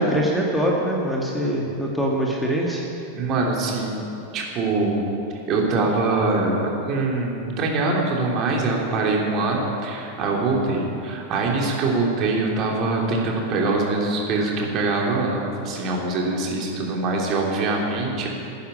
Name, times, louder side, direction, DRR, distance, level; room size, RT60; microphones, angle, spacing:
voice 1, 0.0-2.8, equal, ahead, -3 dB, 2.0 m, -23 dB
voice 2, 3.1-5.0 5.5-18.3, right 3 dB, 35° right, -1 dB, 3.2 m, -23 dB
13.0 x 10.5 x 9.9 m, 2.7 s
figure-of-eight pair, 90°, 0 cm